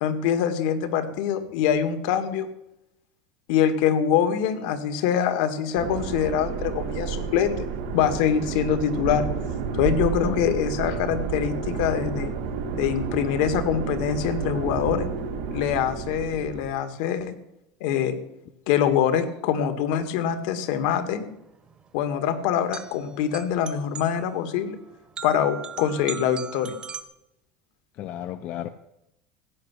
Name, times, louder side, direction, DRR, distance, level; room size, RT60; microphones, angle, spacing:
voice 1, 0.0-2.5 3.5-7.7 7.9-9.3 9.7-12.3 12.7-15.1 15.5-17.3 17.8-18.2 18.7-21.2 21.9-24.8 25.2-26.7, left 9 dB, 70° left, 9 dB, 2.0 m, -24 dB
sound 1, 5.7-16.7, right 6 dB, 85° right, 2.4 m, -30 dB
sound 2, 20.6-27.0, right 6 dB, 20° right, 1.1 m, -39 dB
voice 2, 28.0-28.7, left 12 dB, 45° left, 10 dB, 0.7 m, -33 dB
15.5 x 7.0 x 10.0 m, 0.85 s
cardioid pair, 150°, 4 cm